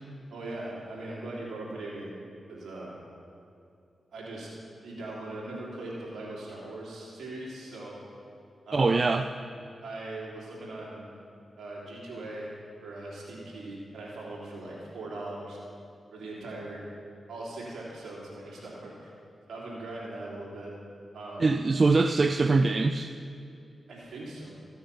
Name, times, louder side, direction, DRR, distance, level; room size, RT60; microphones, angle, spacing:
voice 1, 0.3-2.1 2.5-2.9 4.1-4.5 4.8-8.0 8.6-9.1 9.8-11.0 11.6-12.5 12.8-15.6 16.1-16.9 17.3-19.1 19.5-20.7 21.1-21.5 23.9-24.5, right 2 dB, 80° right, -4 dB, 3.3 m, -40 dB
voice 2, 8.7-9.2 21.4-23.1, right 3 dB, 50° right, 8 dB, 0.4 m, -23 dB
15.0 x 7.0 x 5.6 m, 2.5 s
supercardioid pair, 40°, 0 cm